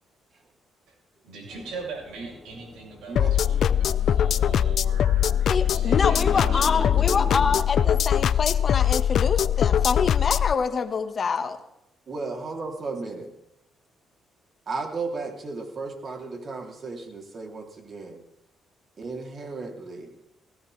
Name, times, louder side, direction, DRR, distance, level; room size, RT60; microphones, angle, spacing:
voice 1, 1.2-6.9, right 4 dB, 85° right, -2 dB, 6.2 m, -40 dB
sound 1, 1.5-7.6, left 1 dB, 5° left, 1.3 m, -39 dB
voice 2, 3.1-3.7 12.1-13.3 14.7-18.2 19.0-20.1, right 3 dB, 45° right, 2 dB, 3.1 m, -35 dB
sound 2, 3.2-10.5, left 9 dB, 65° left, 0.4 m, -22 dB
voice 3, 5.5-11.6, left 5 dB, 45° left, 8 dB, 1.5 m, -26 dB
17.5 x 16.5 x 3.4 m, 0.82 s
cardioid pair, 90°, 0 cm